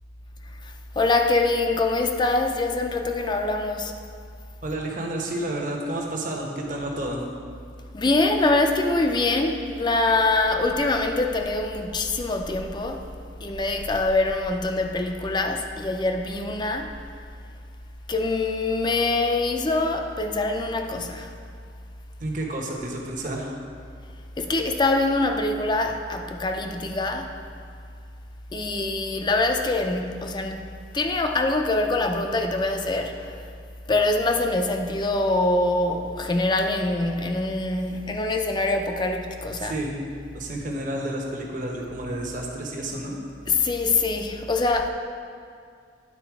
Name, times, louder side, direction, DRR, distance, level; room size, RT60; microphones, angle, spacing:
voice 1, 0.5-3.9 7.9-13.1 13.4-16.9 18.1-21.3 24.4-27.3 28.5-30.7 30.9-33.4 33.9-39.7 43.5-44.9, left 2 dB, 25° left, 4 dB, 0.4 m, -24 dB
voice 2, 4.6-7.2 22.2-23.5 39.6-40.0 40.3-43.2, right 1 dB, 50° right, 0 dB, 1.0 m, -30 dB
9.8 x 4.1 x 4.7 m, 2.3 s
head